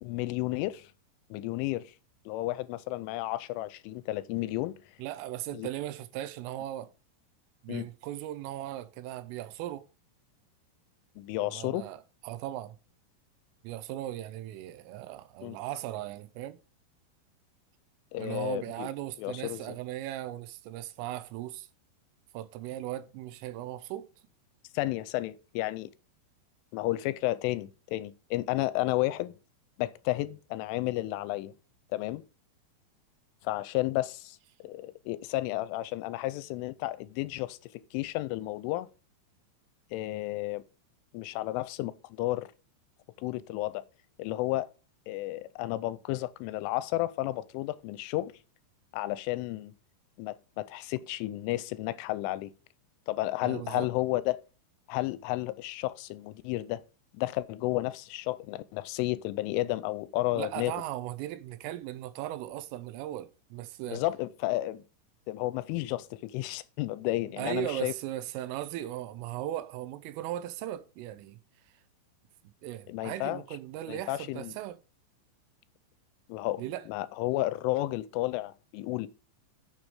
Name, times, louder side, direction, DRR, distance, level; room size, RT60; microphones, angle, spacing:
voice 1, 0.0-0.9 1.3-1.9 2.3-4.7 5.5-5.7 7.7-7.9 11.2-11.9 15.4-15.6 18.1-18.9 19.2-19.8 24.7-25.9 26.7-29.4 29.8-31.5 31.9-32.2 33.4-34.4 34.6-38.9 39.9-40.6 41.1-42.5 43.2-43.8 44.2-44.7 45.1-48.3 48.9-49.7 50.2-52.5 53.1-54.4 54.9-56.8 57.1-60.7 63.9-64.8 65.3-67.9 72.9-73.4 73.9-74.5 76.3-76.6 76.9-79.1, left 17 dB, 85° left, 2.9 m, -32 dB
voice 2, 5.0-6.9 7.6-9.9 11.4-12.8 13.6-16.6 18.2-21.7 22.3-24.1 53.4-53.9 60.4-64.0 67.4-71.4 72.6-74.8 76.6-76.9, right 13 dB, 85° right, 3.3 m, -38 dB
9.0 x 7.0 x 4.9 m
omnidirectional pair, 5.8 m